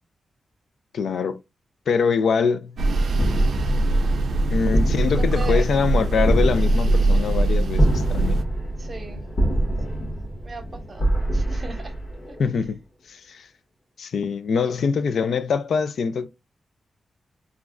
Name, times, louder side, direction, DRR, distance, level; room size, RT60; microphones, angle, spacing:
voice 1, 0.9-1.4 1.9-2.8 4.5-8.4 12.4-12.8 13.1-13.5 14.0-16.3, left 5 dB, 80° left, 0.3 m, -24 dB
sound 1, 2.8-8.4, right 2 dB, 75° right, 0.4 m, -21 dB
sound 2, 3.1-12.6, right 1 dB, 60° left, 1.1 m, -26 dB
voice 2, 5.3-5.7 8.8-9.2 9.9-10.1 10.4-11.1 11.3-11.9, right 3 dB, 45° right, 0.7 m, -37 dB
2.4 x 2.0 x 3.6 m
cardioid pair, 90°, 0 cm